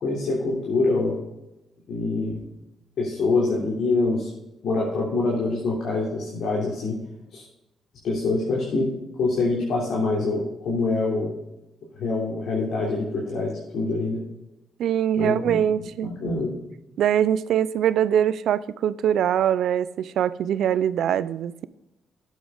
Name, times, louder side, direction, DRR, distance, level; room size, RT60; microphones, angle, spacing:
voice 1, 0.0-1.2 1.9-2.4 3.0-4.3 4.6-7.0 7.3-7.4 8.0-8.9 9.2-11.4 12.0-14.2 15.1-15.6 16.0-16.5, left 3 dB, 70° left, 3.3 m, -25 dB
voice 2, 14.8-16.1 17.0-21.7, right 9 dB, 75° right, 0.5 m, -23 dB
12.0 x 8.4 x 3.9 m
cardioid pair, 90°, 0 cm